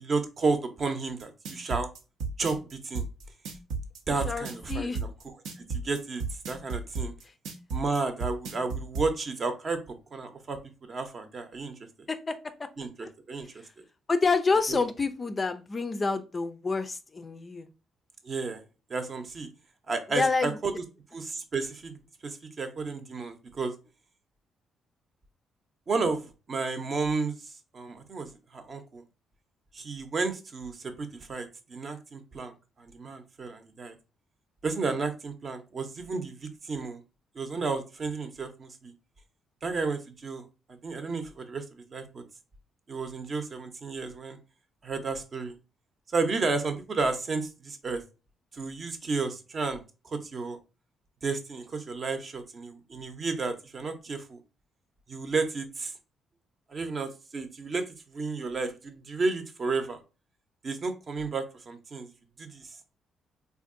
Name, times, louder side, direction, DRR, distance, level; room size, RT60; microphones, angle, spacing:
voice 1, 0.0-1.9 2.4-3.1 4.1-5.1 5.6-7.1 7.7-11.7 12.8-13.8 14.7-14.8 18.2-18.6 18.9-19.5 19.9-20.7 21.1-23.7 25.9-27.4 27.7-29.0 29.7-34.0 34.6-37.0 37.3-38.9 39.6-41.6 41.9-42.2 42.9-44.4 44.8-45.5 46.1-48.0 48.5-50.6 51.2-54.4 55.1-55.9 56.7-60.0 60.6-62.1 62.4-62.8, right 4 dB, 45° right, 7 dB, 0.7 m, -32 dB
sound 1, 1.2-9.1, right 4 dB, 85° right, 0.6 m, -33 dB
voice 2, 4.1-5.0 12.1-12.7 13.0-13.1 14.1-17.7 20.1-20.6, left 4 dB, 30° left, 10 dB, 0.3 m, -28 dB
3.6 x 2.5 x 2.5 m, 0.31 s
cardioid pair, 90°, 0 cm